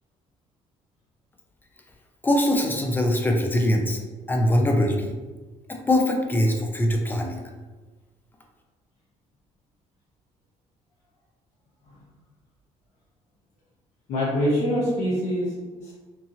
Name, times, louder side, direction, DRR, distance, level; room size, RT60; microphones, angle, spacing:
voice 1, 2.2-4.0 4.3-5.1 5.7-7.4, left 1 dB, 15° left, 1 dB, 0.5 m, -22 dB
voice 2, 14.1-15.9, equal, 65° left, -6 dB, 1.2 m, -25 dB
3.0 x 2.6 x 2.6 m, 1.3 s
cardioid pair, 110°, 13 cm